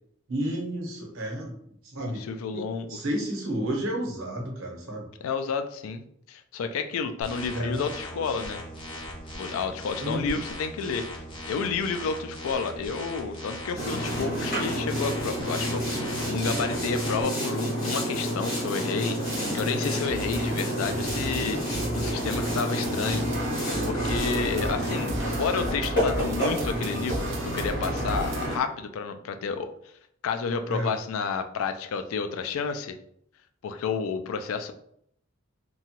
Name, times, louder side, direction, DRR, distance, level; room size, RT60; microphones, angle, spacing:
voice 1, 0.3-1.5 1.9-2.2 2.5-2.6 2.9-5.1 7.5-7.8 10.0-10.4 30.7-30.9, right 1 dB, 80° right, 0 dB, 0.9 m, -31 dB
voice 2, 2.1-3.0 5.2-8.6 9.4-19.2 19.5-21.6 21.9-23.5 23.9-29.7 30.2-33.0 33.6-34.7, left 5 dB, 85° left, 8 dB, 0.3 m, -31 dB
sound 1, 7.2-17.2, left 1 dB, 25° left, 0.5 m, -39 dB
Boat Water vehicle, 13.7-28.6, equal, 45° left, 1.3 m, -29 dB
sound 2, 19.2-28.5, right 1 dB, 60° right, 0.5 m, -35 dB
2.8 x 2.2 x 2.9 m, 0.70 s
head